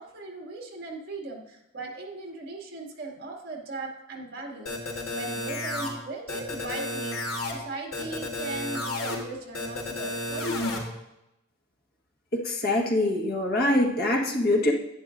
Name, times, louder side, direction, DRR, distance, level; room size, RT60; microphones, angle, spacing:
voice 1, 0.0-10.6, right 2 dB, 50° right, -1 dB, 2.3 m, -38 dB
sound 1, 4.7-5.9 6.3-7.5 7.9-9.2 9.5-10.8, left 2 dB, 80° left, 3.5 m, -31 dB
voice 2, 12.3-14.7, left 1 dB, 50° left, 0 dB, 1.5 m, -24 dB
11.0 x 10.5 x 2.6 m, 0.88 s
head